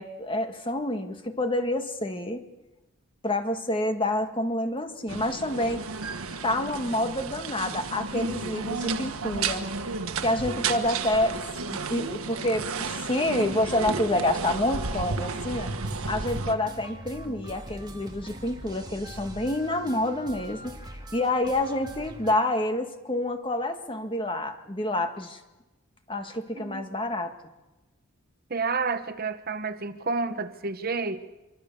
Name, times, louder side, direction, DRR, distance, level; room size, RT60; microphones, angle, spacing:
voice 1, 0.0-2.4 3.2-5.9 6.4-9.7 10.2-11.4 11.7-15.7 16.0-20.8 21.1-25.4 26.1-27.3, left 1 dB, 25° left, 6 dB, 1.7 m, -28 dB
sound 1, 5.1-16.5, right 4 dB, 75° right, 1.5 m, -32 dB
sound 2, 14.2-22.3, right 1 dB, 20° right, 2.1 m, -43 dB
voice 2, 28.5-31.3, right 4 dB, 45° right, 10 dB, 1.0 m, -30 dB
25.5 x 24.0 x 6.9 m, 1.1 s
head